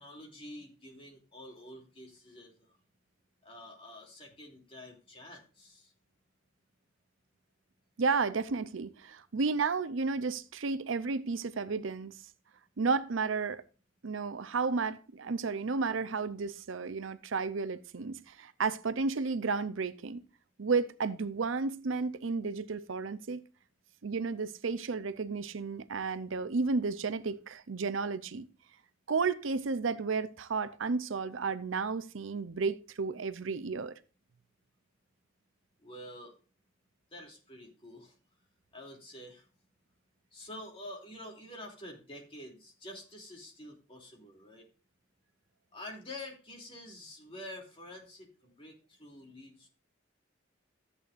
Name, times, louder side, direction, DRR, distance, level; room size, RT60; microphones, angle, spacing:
voice 1, 0.0-2.8 3.4-5.9 35.8-36.3 37.1-38.2 38.7-39.5 40.3-44.7 45.7-49.7, left 1 dB, 30° left, 2.9 m, -48 dB
voice 2, 8.0-12.2 12.8-13.6 14.0-20.2 20.6-23.4 24.0-28.5 29.1-33.9, right 4 dB, 75° right, 0.6 m, -32 dB
13.5 x 8.4 x 2.5 m
head